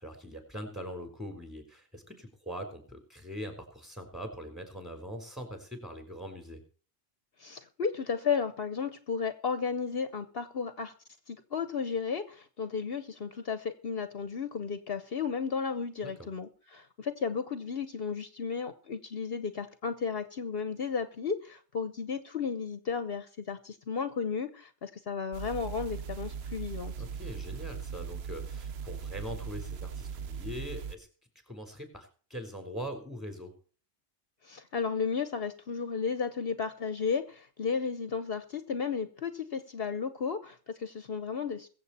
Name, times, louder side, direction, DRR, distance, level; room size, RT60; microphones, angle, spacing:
voice 1, 0.0-6.6 16.0-16.3 27.0-31.1 31.5-33.5, equal, ahead, 6 dB, 4.0 m, -42 dB
voice 2, 7.4-10.9 11.3-26.9 34.4-41.7, left 5 dB, 60° left, 11 dB, 1.1 m, -34 dB
sound 1, 25.3-31.0, right 6 dB, 70° right, 1.0 m, -39 dB
22.5 x 7.8 x 4.2 m, 0.40 s
omnidirectional pair, 1.1 m